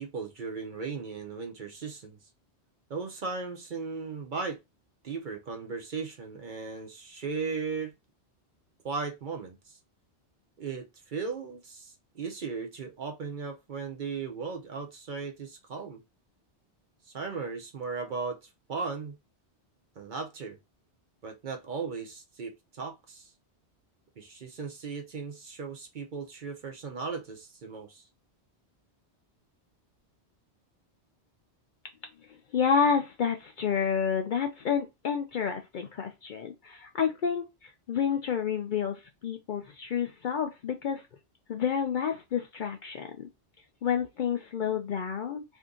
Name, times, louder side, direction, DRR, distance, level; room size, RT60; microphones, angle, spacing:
voice 1, 0.0-2.2 2.9-4.6 5.0-7.9 8.8-9.8 10.6-16.0 17.0-19.2 20.0-20.6 21.2-23.3 24.2-28.0, right 5 dB, 55° right, 0.7 m, -37 dB
voice 2, 32.3-41.0 41.5-43.3 43.8-45.4, left 7 dB, 60° left, 0.6 m, -29 dB
2.7 x 2.6 x 3.5 m
omnidirectional pair, 1.1 m